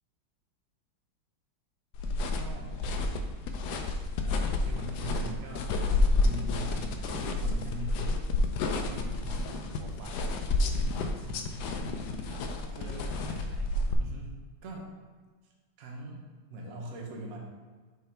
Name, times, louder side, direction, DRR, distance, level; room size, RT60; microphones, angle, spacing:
sound 1, 1.9-13.9, left 2 dB, 70° left, 1.0 m, -30 dB
voice 1, 2.3-2.8 4.2-5.8 6.2-8.0 8.8-9.2 10.4-12.1 12.7-13.1 14.0-14.3 14.6-14.9 15.8-16.2 16.5-17.4, right 1 dB, 55° right, -1 dB, 1.2 m, -42 dB
voice 2, 9.2-10.6 12.3-12.9 13.3-13.7, right 2 dB, 75° right, 0 dB, 1.6 m, -51 dB
5.9 x 3.9 x 4.4 m, 1.5 s
omnidirectional pair, 2.2 m